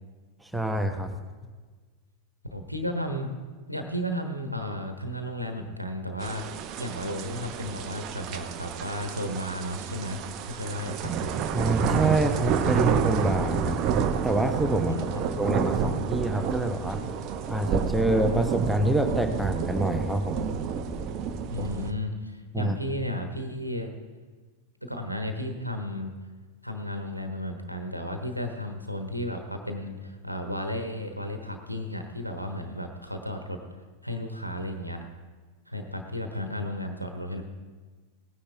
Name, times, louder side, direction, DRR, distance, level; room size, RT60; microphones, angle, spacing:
voice 1, 0.4-1.1 11.5-13.8 14.2-17.0 17.5-20.5 22.5-22.8, right 1 dB, 5° right, 5 dB, 1.0 m, -26 dB
voice 2, 2.5-3.3 3.7-6.4 6.8-11.3 14.8-15.2 21.5-23.9 24.8-26.1 26.6-33.6 34.0-35.0 35.7-37.4, left 1 dB, 90° right, 5 dB, 1.2 m, -33 dB
sound 1, 6.2-21.9, right 6 dB, 40° right, 0.8 m, -29 dB
18.0 x 9.9 x 3.4 m, 1.4 s
figure-of-eight pair, 90°, 0 cm